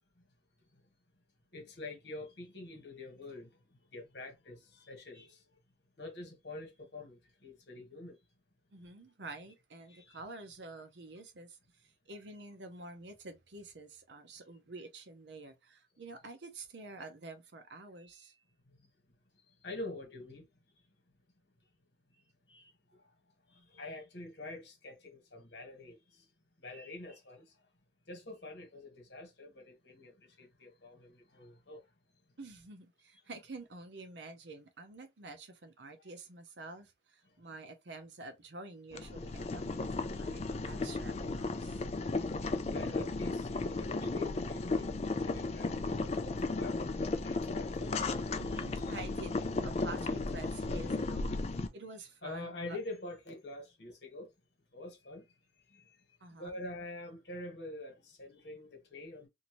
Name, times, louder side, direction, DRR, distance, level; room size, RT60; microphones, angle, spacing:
voice 1, 1.5-3.5 3.9-5.4 6.0-8.2 9.9-10.2 19.6-20.4 22.5-23.0 23.5-26.2 26.6-27.4 28.1-31.8 42.7-44.9 45.2-48.8 52.2-54.3 54.7-55.2 55.7-56.0 56.3-59.3, left 2 dB, 70° left, 1.4 m, -46 dB
voice 2, 8.7-18.4 32.4-41.8 48.4-49.4 49.6-52.8 56.2-56.6, right 3 dB, 70° right, 0.7 m, -49 dB
Boiling, 38.9-51.7, left 3 dB, 35° left, 0.4 m, -35 dB
2.8 x 2.6 x 2.9 m
head